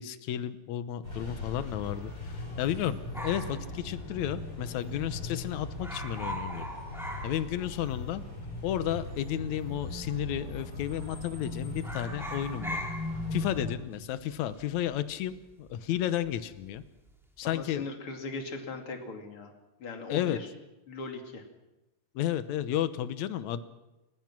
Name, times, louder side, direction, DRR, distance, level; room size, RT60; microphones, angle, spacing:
voice 1, 0.0-6.6 7.2-8.2 8.6-12.8 13.3-16.8 17.4-17.8 20.1-20.4 22.2-23.6, left 11 dB, 70° left, 13 dB, 2.2 m, -32 dB
sound 1, 1.0-13.7, left 2 dB, 30° left, 6.6 m, -39 dB
sound 2, 3.1-4.6 4.9-5.0 5.2-5.5 5.8-8.1 8.3-8.4 9.2-9.9 10.2-10.5 10.8-11.4 11.7-16.4 16.7-17.1, equal, ahead, 2.7 m, -41 dB
voice 2, 17.4-19.5 19.8-20.5 20.9-21.4, left 3 dB, 45° left, 4 dB, 3.3 m, -39 dB
29.5 x 16.5 x 6.1 m, 1.0 s
omnidirectional pair, 3.5 m